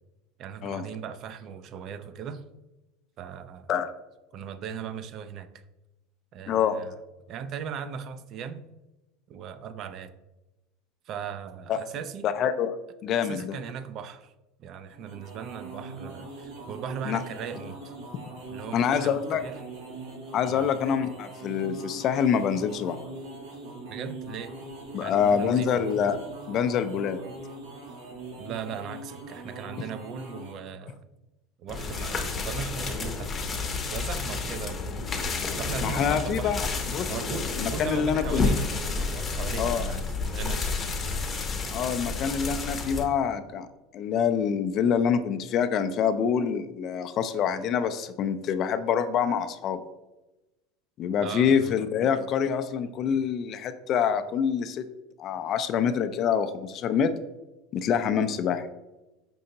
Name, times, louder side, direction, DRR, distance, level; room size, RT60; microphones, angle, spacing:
voice 1, 0.4-2.4 3.2-3.8 4.3-5.5 6.3-6.9 7.3-8.6 9.3-10.1 11.1-12.3 13.1-14.3 14.6-17.9 18.5-19.6 20.5-20.7 23.9-24.6 25.0-25.9 28.4-31.0 31.6-33.4 33.9-34.9 35.6-36.6 37.1-40.9 51.2-51.8, right 7 dB, 50° right, 11 dB, 0.3 m, -38 dB
voice 2, 6.5-6.8 11.7-11.8 12.2-12.8 13.0-13.6 17.1-17.2 18.7-19.4 20.3-23.0 24.9-26.2 26.5-27.2 35.8-37.1 37.6-38.5 39.6-39.9 41.7-43.7 43.9-49.8 51.0-54.9 55.2-57.1 57.7-58.7, left 7 dB, 45° left, 10 dB, 0.3 m, -26 dB
sound 1, 14.9-30.7, right 2 dB, 80° right, 1.2 m, -42 dB
sound 2, 31.7-43.1, left 4 dB, 25° left, 0.7 m, -30 dB
5.3 x 2.8 x 2.7 m, 1.0 s
supercardioid pair, 105°, 0 cm